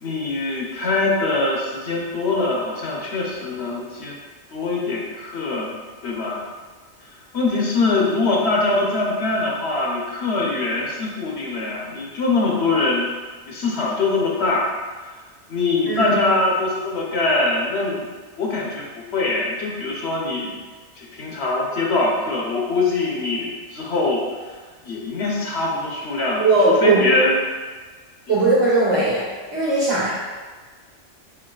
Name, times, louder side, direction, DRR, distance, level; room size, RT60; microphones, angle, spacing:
voice 1, 0.0-4.1 4.5-5.7 6.0-6.5 7.3-13.1 13.5-14.7 15.5-18.1 18.4-20.6 21.0-24.2 24.8-26.5 26.8-27.4, left 3 dB, 65° left, -2 dB, 1.0 m, -23 dB
voice 2, 15.9-16.2 26.4-27.0 28.3-29.3 29.5-30.1, right 2 dB, 80° right, -8 dB, 1.3 m, -18 dB
4.6 x 3.9 x 2.3 m, 1.4 s
omnidirectional pair, 1.2 m